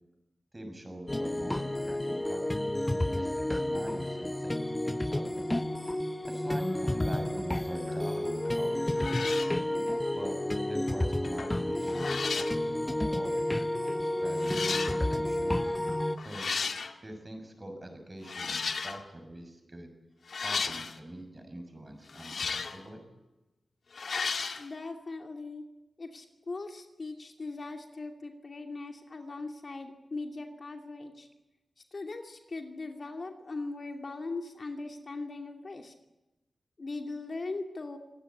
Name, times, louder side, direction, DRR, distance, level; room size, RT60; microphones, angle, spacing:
voice 1, 0.5-4.6 4.8-5.4 6.3-9.4 10.1-13.4 14.0-15.8 16.2-16.5 17.0-19.9 20.4-23.0, right 1 dB, 20° right, 5 dB, 7.0 m, -44 dB
sound 1, 1.1-16.2, left 1 dB, 15° left, 0.9 m, -31 dB
sound 2, 8.4-8.6 8.9-9.6 11.2-11.6 11.9-12.6 13.6-13.7 14.4-15.0 16.2-16.9 18.2-19.0 20.3-21.0 22.1-22.8 23.9-24.6, left 5 dB, 65° left, 1.9 m, -34 dB
voice 2, 24.6-25.6 26.0-31.3 31.9-35.9 36.8-38.0, left 3 dB, 45° left, 4 dB, 2.6 m, -39 dB
25.0 x 19.0 x 9.8 m, 0.99 s
wide cardioid pair, 120°, 0 cm